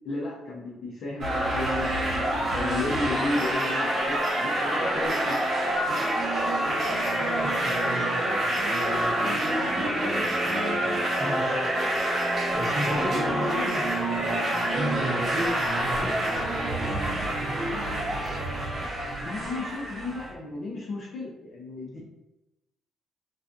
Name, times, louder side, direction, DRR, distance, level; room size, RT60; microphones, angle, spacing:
voice 1, 0.0-2.1 2.5-5.4 12.9-13.7 19.2-22.0, left 2 dB, 65° left, -4 dB, 0.6 m, -33 dB
sound 1, 1.2-20.3, right 1 dB, 55° right, 0.9 m, -27 dB
voice 2, 6.8-11.6 12.5-18.4 21.9-22.0, equal, 25° right, -7 dB, 1.1 m, -35 dB
2.4 x 2.2 x 2.5 m, 0.95 s
cardioid pair, 90°, 0 cm